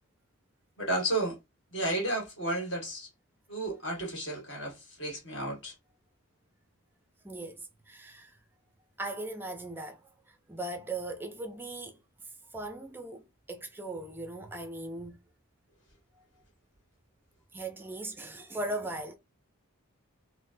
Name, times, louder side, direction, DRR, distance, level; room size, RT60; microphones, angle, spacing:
voice 1, 0.8-1.4 1.7-3.1 3.5-5.7, right 1 dB, 55° left, 1.6 m, -32 dB
voice 2, 7.2-8.4 9.0-15.2 16.2-16.3 17.5-19.2, right 2 dB, 10° right, 0.4 m, -39 dB
4.1 x 2.0 x 2.6 m
head